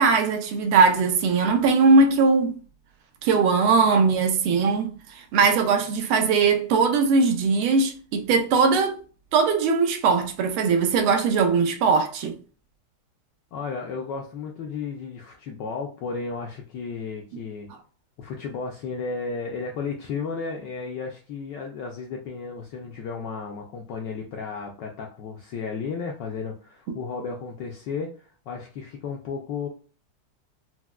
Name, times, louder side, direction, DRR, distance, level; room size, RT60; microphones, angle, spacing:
voice 1, 0.0-2.6 3.2-8.9 9.3-12.4, right 4 dB, 90° right, 1.5 m, -20 dB
voice 2, 13.5-17.7 18.2-29.7, left 5 dB, 80° left, 1.0 m, -33 dB
4.5 x 2.0 x 2.2 m
omnidirectional pair, 2.4 m